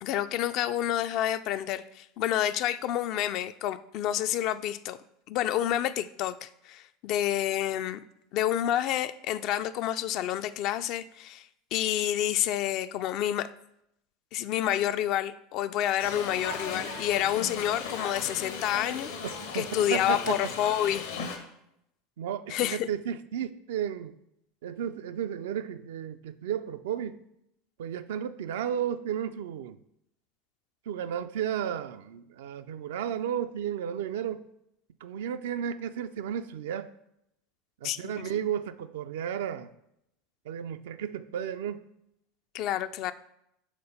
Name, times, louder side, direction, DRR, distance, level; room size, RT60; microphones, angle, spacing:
voice 1, 0.0-5.0 5.3-8.0 8.3-13.5 14.3-19.1 19.5-21.4 22.5-22.9 37.8-38.2 42.5-43.1, left 12 dB, 50° left, 12 dB, 0.3 m, -29 dB
sound 1, 16.0-21.4, left 5 dB, 75° left, 1.0 m, -37 dB
voice 2, 19.5-20.4 22.2-24.2 24.6-27.2 27.8-29.8 30.9-34.5 35.0-36.9 37.8-39.7 40.5-41.9, right 9 dB, 70° right, 11 dB, 0.3 m, -33 dB
5.1 x 3.9 x 5.5 m, 0.80 s
figure-of-eight pair, 80°, 0 cm